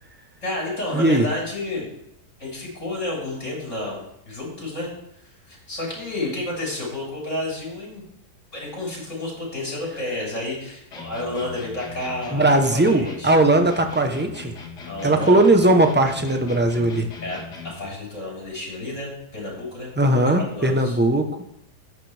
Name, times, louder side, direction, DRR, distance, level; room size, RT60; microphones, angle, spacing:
voice 1, 0.4-1.9 2.4-4.9 5.5-8.0 8.5-13.7 14.8-15.4 17.2-21.0, left 2 dB, 45° left, -4 dB, 5.9 m, -31 dB
voice 2, 0.9-1.3 12.3-14.5 15.0-17.1 20.0-21.4, right 1 dB, 10° right, 5 dB, 0.6 m, -18 dB
sound 1, 10.9-17.9, left 4 dB, 85° left, 2.3 m, -39 dB
13.5 x 9.7 x 3.4 m, 0.78 s
omnidirectional pair, 1.7 m